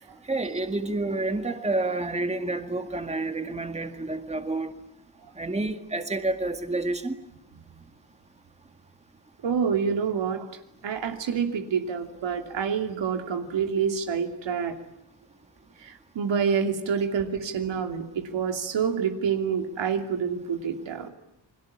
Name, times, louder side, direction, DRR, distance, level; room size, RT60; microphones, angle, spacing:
voice 1, 0.3-4.7 5.4-7.2, right 2 dB, 15° right, 7 dB, 2.0 m, -29 dB
voice 2, 9.4-10.5 10.8-14.7 15.8-21.1, right 6 dB, 85° right, 5 dB, 2.9 m, -27 dB
30.0 x 22.0 x 8.6 m, 0.83 s
wide cardioid pair, 115°, 43 cm